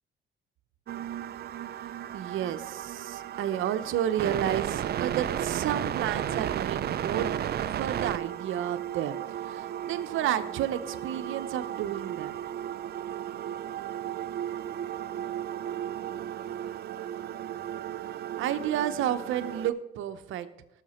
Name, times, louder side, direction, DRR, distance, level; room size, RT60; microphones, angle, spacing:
sound 1, 0.9-19.7, right 10 dB, 55° right, 0.5 m, -34 dB
voice 1, 2.1-12.4 18.4-20.5, right 11 dB, 80° right, 11 dB, 0.8 m, -31 dB
17.5 x 6.7 x 4.3 m, 0.98 s
cardioid pair, 90°, 20 cm